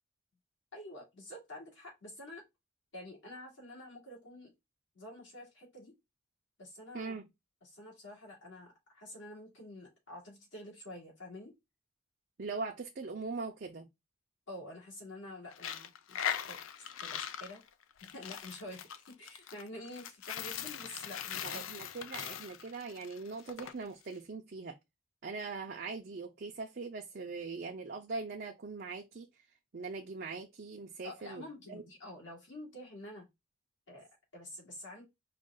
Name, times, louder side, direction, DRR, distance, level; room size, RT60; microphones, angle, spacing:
voice 1, 0.7-2.4 2.9-4.5 4.9-5.9 6.6-7.2 7.6-11.6 14.5-17.6 18.0-21.6 31.0-33.3 33.9-35.0, left 1 dB, 65° left, 2.6 m, -48 dB
voice 2, 6.9-7.3 12.4-13.9 21.4-24.8 25.2-29.3 29.7-31.8, right 4 dB, 50° right, 0.5 m, -41 dB
Coin (dropping), 15.5-23.7, left 9 dB, 80° left, 0.5 m, -40 dB
5.0 x 2.4 x 3.7 m
head